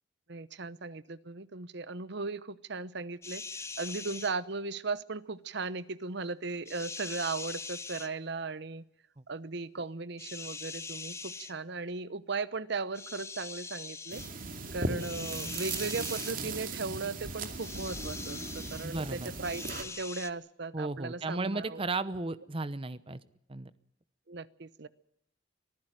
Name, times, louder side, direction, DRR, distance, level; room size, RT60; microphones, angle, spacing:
voice 1, 0.3-3.4 3.8-8.8 9.3-14.2 14.7-21.8 24.3-24.9, right 3 dB, 65° right, 17 dB, 0.9 m, -37 dB
sound 1, 3.2-4.3 6.7-8.1 10.2-11.5 12.9-14.3 15.0-16.3 17.6-18.9 19.4-20.3, left 4 dB, 15° left, 0.9 m, -42 dB
sound 2, 14.1-19.8, right 3 dB, 50° right, 2.6 m, -38 dB
voice 2, 18.8-19.3 20.7-23.2 23.5-23.7, right 3 dB, 30° right, 15 dB, 0.9 m, -34 dB
24.0 x 15.0 x 9.1 m, 0.76 s
head